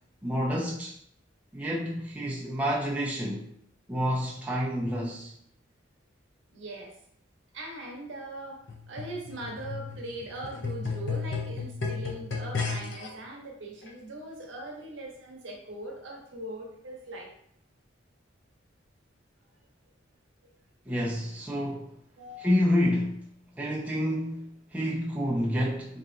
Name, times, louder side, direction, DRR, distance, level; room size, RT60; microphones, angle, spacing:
voice 1, 0.2-1.0 1.5-3.4 3.9-5.3 20.9-21.9 22.4-23.2 23.6-26.0, equal, 5° right, 0.3 m, -28 dB
voice 2, 6.5-7.0 7.5-17.3 22.2-22.6, right 1 dB, 70° right, 0.8 m, -40 dB
sound 1, 8.7-13.1 13.9-14.0, left 4 dB, 65° left, 0.6 m, -34 dB
3.3 x 2.8 x 2.5 m
head